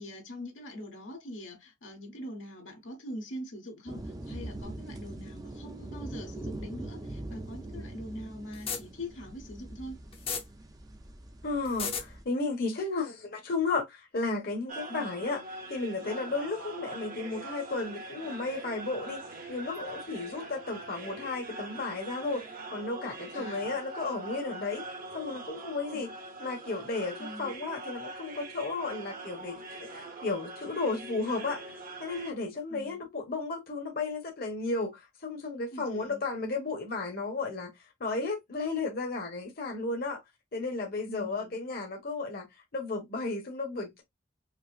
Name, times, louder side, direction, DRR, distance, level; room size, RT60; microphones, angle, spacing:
voice 1, 0.0-10.0 14.9-15.1 23.3-23.8 25.9-26.1 27.2-27.5 32.7-33.0 35.7-36.2 41.1-41.6, left 1 dB, 85° left, 1.3 m, -43 dB
sound 1, 3.9-12.2, right 1 dB, 20° right, 0.5 m, -42 dB
sound 2, 8.5-8.8 10.1-10.4 11.6-12.0, left 6 dB, 30° left, 0.7 m, -32 dB
voice 2, 11.4-15.4 15.7-24.8 25.1-26.1 26.4-37.7 38.0-40.2 40.5-44.0, left 3 dB, 50° left, 1.1 m, -34 dB
sound 3, 14.7-32.3, right 2 dB, 50° right, 0.8 m, -43 dB
5.0 x 2.0 x 2.4 m
head